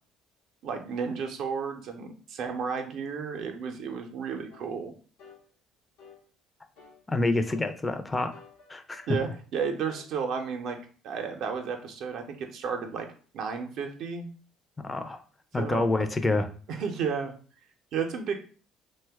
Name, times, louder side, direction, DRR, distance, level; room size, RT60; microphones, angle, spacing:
voice 1, 0.6-4.9 9.1-10.8 11.0-13.1 13.3-14.3 15.6-15.9 16.7-17.3 17.9-18.3, right 6 dB, 65° right, 4 dB, 0.5 m, -32 dB
sound 1, 4.5-4.7 5.2-5.4 6.0-6.2 6.8-7.0 7.5-7.8 8.3-9.4 9.9-10.1, left 5 dB, 80° left, 0.7 m, -52 dB
voice 2, 7.1-8.3 8.7-9.0 14.8-15.2 15.5-16.5, left 2 dB, 20° left, 8 dB, 0.4 m, -27 dB
2.8 x 2.1 x 3.4 m, 0.40 s
hypercardioid pair, 65°, 0 cm